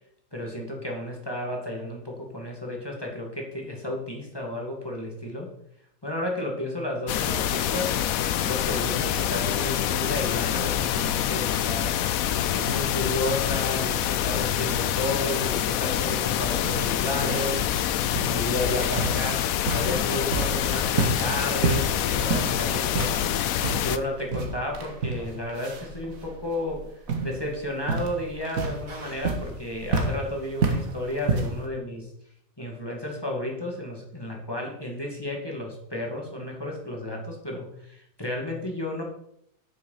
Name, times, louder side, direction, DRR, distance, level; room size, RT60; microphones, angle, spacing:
voice 1, 0.3-5.5 6.0-7.9 8.4-12.0 12.5-17.6 18.3-23.1 23.8-26.8 27.2-32.1 32.6-39.0, left 1 dB, 15° left, -1 dB, 2.2 m, -32 dB
sound 1, 7.1-24.0, left 10 dB, 70° left, 1.0 m, -26 dB
sound 2, 16.5-31.7, right 3 dB, 60° right, 1.8 m, -31 dB
8.6 x 6.5 x 5.8 m, 0.72 s
omnidirectional pair, 1.7 m